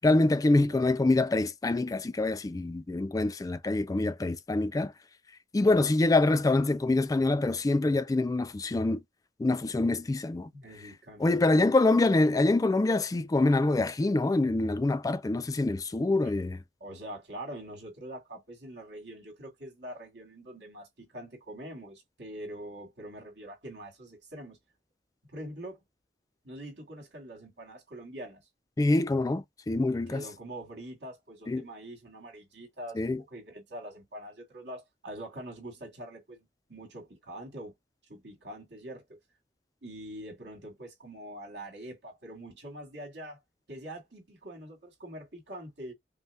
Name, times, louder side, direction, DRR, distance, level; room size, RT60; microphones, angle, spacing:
voice 1, 0.0-4.9 5.5-9.0 9.4-10.5 11.2-16.6 28.8-30.2 31.5-31.6 33.0-33.2, left 2 dB, 20° left, 0.3 m, -25 dB
voice 2, 10.5-12.1 16.2-16.3 16.8-24.6 25.3-25.8 26.4-28.4 30.1-37.7 38.1-39.0 39.8-43.4 43.7-45.9, right 1 dB, 70° right, 2.3 m, -44 dB
5.4 x 2.1 x 3.5 m
head